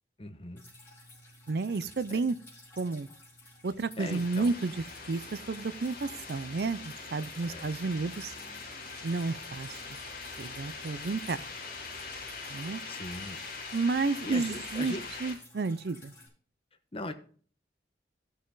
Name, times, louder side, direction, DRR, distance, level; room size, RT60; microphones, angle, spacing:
voice 1, 0.2-0.6 4.0-4.5 7.4-7.7 12.9-13.4 14.2-15.0 16.9-17.1, left 1 dB, 30° left, 7 dB, 1.0 m, -39 dB
Drip, 0.6-16.3, left 2 dB, 15° left, 4.9 m, -53 dB
voice 2, 1.5-2.4 2.8-3.1 3.6-8.3 9.0-10.0 10.4-11.4 12.5-12.8 13.7-16.1, right 3 dB, 60° right, 15 dB, 0.5 m, -31 dB
sound 1, 4.0-15.3, left 4 dB, 50° left, 2.8 m, -42 dB
14.0 x 6.2 x 3.9 m, 0.43 s
head